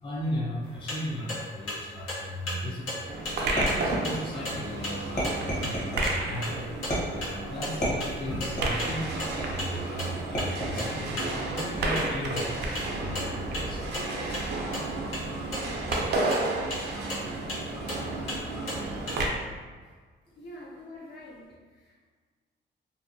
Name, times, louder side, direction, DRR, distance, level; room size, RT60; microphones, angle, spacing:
voice 1, 0.0-6.6 7.1-13.9 20.3-20.5, equal, 25° left, -4 dB, 0.5 m, -36 dB
sound 1, 0.6-19.2, left 1 dB, 85° left, 0.9 m, -38 dB
sound 2, 3.1-19.3, right 2 dB, 60° right, 0.5 m, -32 dB
sound 3, 3.6-4.5 5.2-6.1 6.9-7.3 7.8-8.9 9.4-9.8 10.3-11.0 11.8-12.2, equal, 40° left, 1.1 m, -32 dB
voice 2, 20.4-22.1, left 1 dB, 60° left, -3 dB, 0.7 m, -46 dB
2.5 x 2.2 x 2.5 m, 1.5 s
cardioid pair, 90°, 20 cm